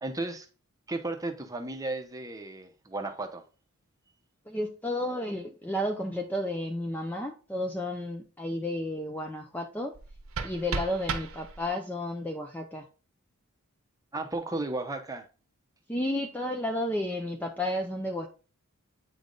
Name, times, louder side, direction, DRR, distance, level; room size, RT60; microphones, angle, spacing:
voice 1, 0.0-0.5 0.9-3.4 14.1-15.3, right 2 dB, 15° right, 0.8 m, -34 dB
voice 2, 4.5-9.9 10.4-12.8 15.9-18.3, left 1 dB, 10° left, 0.5 m, -32 dB
sound 1, 9.9-11.9, right 4 dB, 75° right, 0.9 m, -36 dB
8.5 x 3.4 x 3.9 m
head